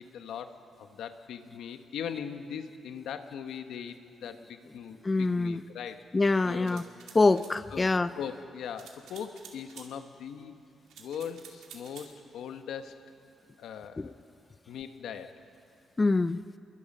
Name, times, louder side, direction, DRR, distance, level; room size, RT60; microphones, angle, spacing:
voice 1, 0.0-6.0 6.4-6.9 7.7-10.5 11.0-13.1 13.6-14.1 14.7-15.4, left 8 dB, 85° left, 8 dB, 1.2 m, -40 dB
voice 2, 5.0-5.6 6.1-6.8 7.1-8.1 14.0-14.1 16.0-16.4, left 3 dB, 20° left, 13 dB, 0.4 m, -25 dB
sound 1, 6.7-7.5 8.8-9.9 10.9-12.1, right 7 dB, 85° right, 2.6 m, -50 dB
27.0 x 22.5 x 5.5 m, 2.6 s
cardioid pair, 115°, 0 cm